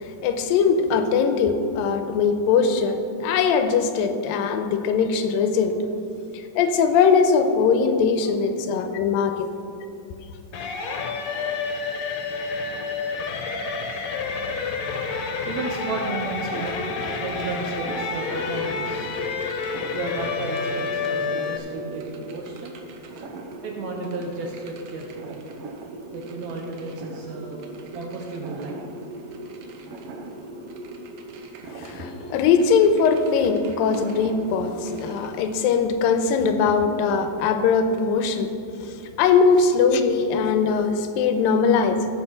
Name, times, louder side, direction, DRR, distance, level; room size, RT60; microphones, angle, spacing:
voice 1, 0.0-5.8 6.3-9.5 31.8-38.5 38.8-42.1, left 5 dB, 85° left, 8 dB, 2.4 m, -21 dB
sound 1, 10.5-21.6, left 4 dB, 65° left, 1.8 m, -29 dB
voice 2, 12.7-13.3 14.1-14.2 15.5-16.8 17.2-19.1 19.9-22.7 23.6-25.4 26.1-27.7 27.9-28.8 29.4-29.8, right 3 dB, 70° right, 1 dB, 1.8 m, -33 dB
sound 2, 16.4-35.3, right 2 dB, 90° right, 1.3 m, -39 dB
15.0 x 6.0 x 5.8 m, 2.5 s
omnidirectional pair, 4.1 m